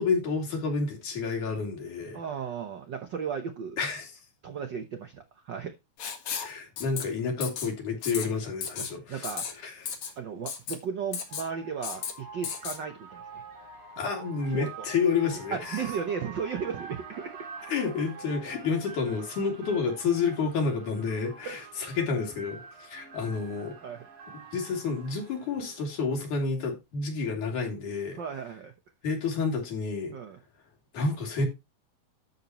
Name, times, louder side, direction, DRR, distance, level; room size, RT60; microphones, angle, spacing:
voice 1, 0.0-2.2 3.8-4.1 6.4-9.3 9.6-9.7 14.0-15.8 17.7-23.8 24.5-28.2 29.0-30.2 30.9-31.5, left 4 dB, 80° left, 4.3 m, -29 dB
voice 2, 2.1-3.8 4.4-5.8 8.8-9.5 10.2-13.4 14.5-14.9 15.5-17.4 21.4-21.6 23.8-24.1 28.2-28.7 30.1-30.4, right 6 dB, 90° right, 0.9 m, -35 dB
Writing, 6.0-6.5 6.8-7.0 7.4-7.7 8.0-8.3 8.6-8.9 9.2-9.5 9.9-10.1 10.5-10.8 11.1-11.5 11.8-12.1 12.4-12.8, left 7 dB, 65° left, 2.9 m, -34 dB
sound 1, 10.6-26.2, right 5 dB, 45° right, 2.8 m, -46 dB
12.5 x 6.9 x 3.0 m
omnidirectional pair, 3.5 m